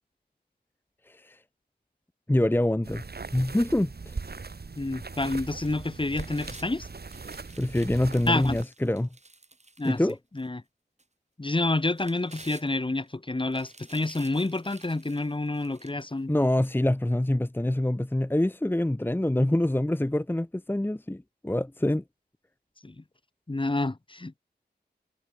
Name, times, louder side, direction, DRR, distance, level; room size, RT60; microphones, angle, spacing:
voice 1, 1.1-1.4 2.3-3.0 3.3-4.1 7.6-9.1 9.8-10.1 16.3-22.0, left 1 dB, 10° left, 1.0 m, -25 dB
sound 1, 2.8-8.6, right 4 dB, 65° right, 4.3 m, -40 dB
voice 2, 4.8-6.9 8.3-8.6 9.8-10.0 10.3-10.6 11.4-16.3 22.8-23.0 23.5-24.4, left 2 dB, 30° left, 1.6 m, -28 dB
sound 2, 5.5-6.7 7.1-10.5 11.0-11.1 11.7-13.1 13.5-16.1 16.6-16.7, right 2 dB, 40° right, 7.7 m, -51 dB
cardioid pair, 50°, 17 cm